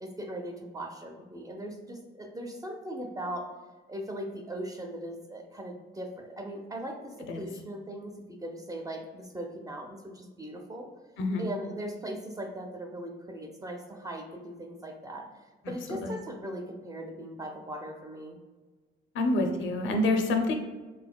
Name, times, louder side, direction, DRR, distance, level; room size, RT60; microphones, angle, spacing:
voice 1, 0.0-3.5 3.9-8.1 8.4-10.9 11.4-15.3 15.7-18.4, right 1 dB, 20° right, 2 dB, 0.6 m, -39 dB
voice 2, 19.1-20.6, left 2 dB, 75° left, 4 dB, 0.6 m, -27 dB
4.0 x 3.7 x 2.2 m, 1.3 s
cardioid pair, 90°, 20 cm